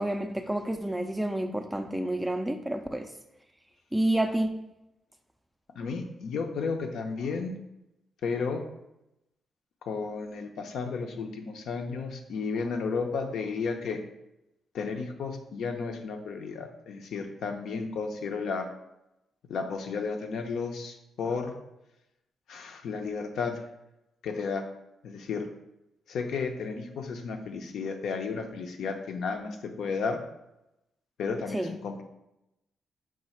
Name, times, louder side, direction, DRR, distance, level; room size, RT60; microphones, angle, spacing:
voice 1, 0.0-3.1 3.9-4.5 31.5-31.7, right 1 dB, 5° right, 6 dB, 0.3 m, -29 dB
voice 2, 5.8-7.6 8.2-8.6 9.9-14.0 14.7-18.7 19.5-21.6 22.5-23.6 24.2-24.6 25.0-25.5 26.1-30.2 31.2-32.0, left 5 dB, 70° left, 5 dB, 0.5 m, -33 dB
4.7 x 2.4 x 4.2 m, 0.88 s
cardioid pair, 115°, 0 cm